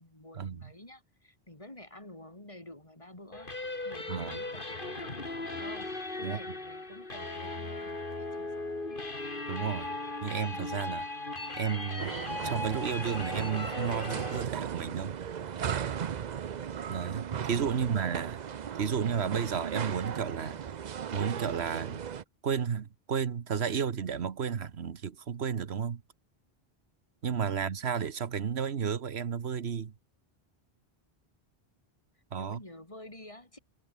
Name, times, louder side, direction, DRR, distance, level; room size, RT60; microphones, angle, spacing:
voice 1, 0.0-5.9 6.2-8.7 17.6-17.9 27.4-27.8 32.4-33.6, left 1 dB, 30° left, 3.3 m, -50 dB
sound 1, 3.3-14.4, left 2 dB, 55° left, 3.3 m, -38 dB
voice 2, 4.1-4.4 6.2-6.4 9.5-9.9 10.2-11.1 11.6-12.1 12.4-15.1 16.9-18.4 18.8-20.6 21.1-22.0 22.4-26.0 27.2-29.9 32.3-32.6, right 7 dB, 85° right, 1.4 m, -32 dB
sound 2, 12.0-22.2, right 8 dB, 50° right, 0.7 m, -37 dB
omnidirectional pair, 1.1 m